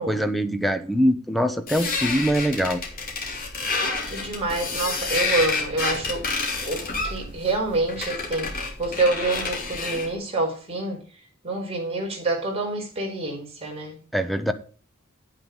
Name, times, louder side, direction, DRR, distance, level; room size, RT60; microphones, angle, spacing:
voice 1, 0.0-2.8 14.1-14.5, equal, ahead, 0.9 m, -23 dB
sound 1, 1.7-10.1, left 3 dB, 45° left, 3.4 m, -29 dB
voice 2, 4.0-6.2 6.7-11.0 11.4-14.0, right 2 dB, 30° right, 4.5 m, -27 dB
9.5 x 9.2 x 4.0 m
head